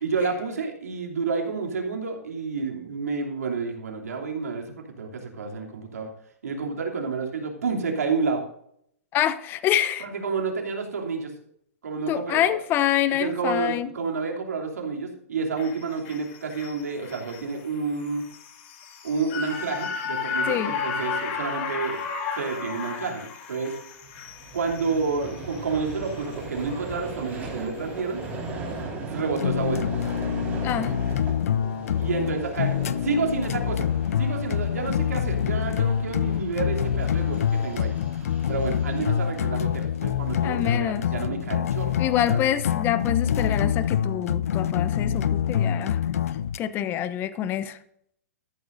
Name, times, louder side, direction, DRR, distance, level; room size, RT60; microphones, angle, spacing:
voice 1, 0.0-6.1 6.4-8.4 10.0-11.3 11.8-12.6 13.1-18.2 19.0-22.0 22.4-23.8 24.5-28.2 29.1-29.9 32.0-33.9 34.2-37.9 38.5-42.0 42.2-42.4, right 4 dB, 80° right, 1 dB, 3.0 m, -29 dB
voice 2, 9.1-10.1 12.1-13.9 20.5-20.7 30.6-30.9 40.4-41.1 42.0-46.0 46.6-47.8, left 11 dB, 25° left, 14 dB, 0.7 m, -26 dB
sound 1, 15.6-27.9 28.3-28.4, left 6 dB, 50° left, 2.4 m, -34 dB
Vehicle, 24.0-40.4, right 3 dB, 20° right, 3.9 m, -38 dB
sound 2, 29.4-46.6, left 9 dB, 70° left, 0.6 m, -26 dB
13.5 x 12.0 x 2.7 m, 0.71 s
hypercardioid pair, 135°, 8 cm